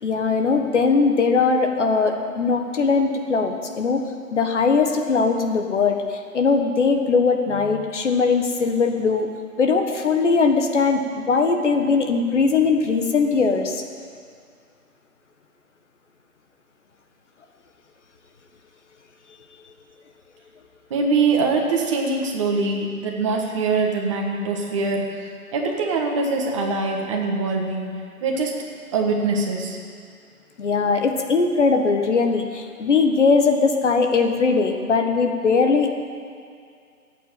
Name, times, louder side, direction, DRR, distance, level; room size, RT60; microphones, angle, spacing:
voice 1, 0.0-4.0 4.3-9.3 9.6-13.8 30.6-35.9, left 4 dB, 50° left, 5 dB, 1.6 m, -20 dB
voice 2, 20.9-25.0 25.5-27.8 28.2-28.5 28.9-29.8, right 4 dB, 20° right, 0 dB, 1.5 m, -23 dB
13.5 x 8.6 x 9.1 m, 2.3 s
hypercardioid pair, 160°, 45 cm